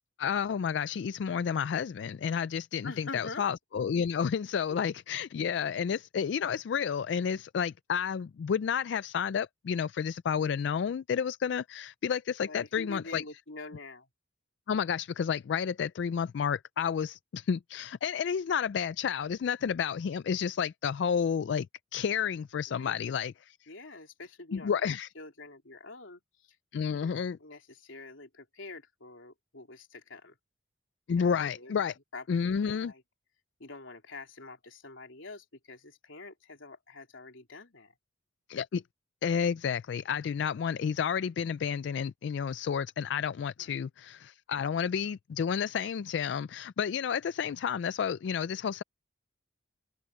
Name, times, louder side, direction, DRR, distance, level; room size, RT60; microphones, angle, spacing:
voice 1, 0.2-13.2 14.7-21.7 21.9-23.7 24.5-25.1 26.7-27.4 31.1-31.9 32.3-32.9 38.5-38.8 39.2-48.8, left 7 dB, 60° left, 0.3 m, -31 dB
voice 2, 2.8-3.5 4.7-4.8 12.4-14.1 22.7-22.9 23.7-26.6 26.9-30.4 31.2-31.7 32.1-33.0 33.6-37.9 43.6-43.7, left 3 dB, 80° left, 3.3 m, -46 dB
open air
head